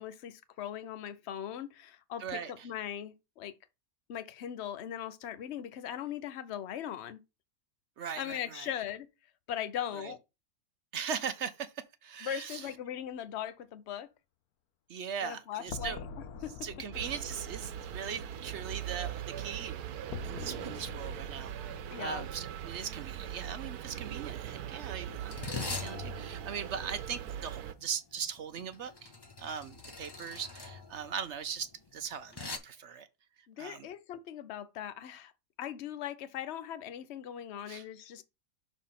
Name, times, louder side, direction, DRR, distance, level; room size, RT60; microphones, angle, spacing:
voice 1, 0.0-3.5 4.1-7.2 8.2-9.1 9.5-10.2 12.2-14.1 15.2-16.0 16.4-16.5 21.9-22.3 33.5-35.3 35.6-38.2, left 10 dB, 55° left, 0.9 m, -39 dB
voice 2, 2.2-2.7 8.0-8.7 9.9-10.1 10.9-11.7 12.0-12.7 14.9-16.0 16.6-19.8 20.2-29.1 29.4-31.7 31.9-33.1 33.6-33.9 37.7-37.8, right 7 dB, 60° right, 0.9 m, -40 dB
sound 1, 15.7-23.7, left 5 dB, 80° left, 1.2 m, -47 dB
sound 2, 16.9-27.7, right 10 dB, 90° right, 1.2 m, -41 dB
sound 3, 22.5-22.7 23.0-23.3 24.1-32.6, left 4 dB, 25° left, 0.6 m, -43 dB
6.4 x 4.0 x 5.7 m
omnidirectional pair, 1.6 m